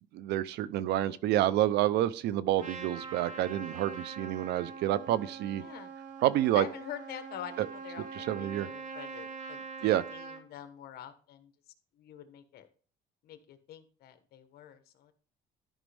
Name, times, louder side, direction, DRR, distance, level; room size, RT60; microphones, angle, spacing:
voice 1, 0.1-5.6 6.2-6.7 7.6-7.7 8.2-8.7 9.8-10.0, right 13 dB, 80° right, 0.6 m, -28 dB
Trumpet, 2.6-10.4, right 5 dB, 50° right, 1.9 m, -43 dB
voice 2, 5.5-5.9 6.5-11.5 12.0-12.7 13.2-15.1, left 10 dB, 70° left, 1.3 m, -46 dB
13.0 x 5.1 x 3.5 m
cardioid pair, 110°, 17 cm